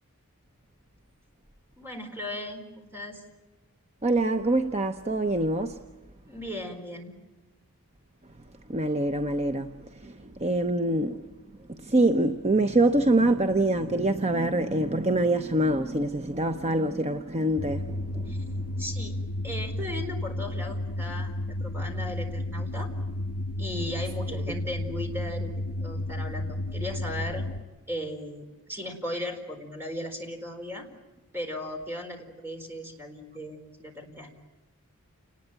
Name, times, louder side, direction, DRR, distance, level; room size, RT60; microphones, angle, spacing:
voice 1, 1.8-3.2 6.3-7.2 18.3-18.4 18.8-21.3 21.6-22.9 23.6-25.5 25.8-27.5 27.9-30.9 31.3-34.4, left 1 dB, 10° right, 4.4 m, -37 dB
voice 2, 4.0-5.8 8.7-9.7 10.0-11.3 11.7-18.4, right 2 dB, 30° right, 0.9 m, -25 dB
sound 1, 17.6-27.6, left 1 dB, 75° left, 2.9 m, -32 dB
29.0 x 20.0 x 8.9 m
head